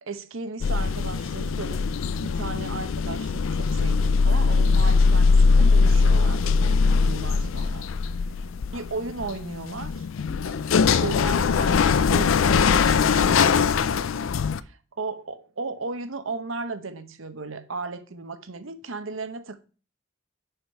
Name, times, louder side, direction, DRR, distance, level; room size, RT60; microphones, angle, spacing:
voice 1, 0.0-1.9 2.2-7.9 8.7-13.8 14.6-19.6, right 3 dB, 75° right, 0.9 m, -36 dB
sound 1, 0.6-14.6, left 5 dB, 70° left, 0.4 m, -21 dB
6.8 x 5.8 x 4.5 m
head